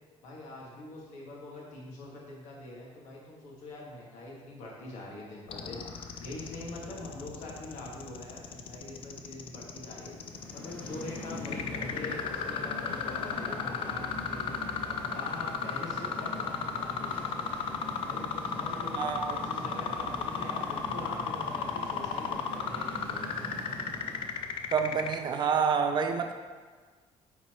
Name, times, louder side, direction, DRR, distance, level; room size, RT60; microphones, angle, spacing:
voice 1, 0.2-10.1 10.5-14.5 14.9-17.5 18.0-23.5, left 2 dB, 85° left, -4 dB, 1.8 m, -44 dB
sound 1, 5.5-25.2, left 8 dB, 50° left, 0.4 m, -35 dB
sound 2, 10.1-24.6, left 1 dB, 15° left, 0.8 m, -42 dB
voice 2, 18.9-19.4 24.7-26.3, right 6 dB, 40° right, 6 dB, 0.5 m, -28 dB
9.0 x 4.3 x 3.0 m, 1.5 s
cardioid pair, 175°, 12 cm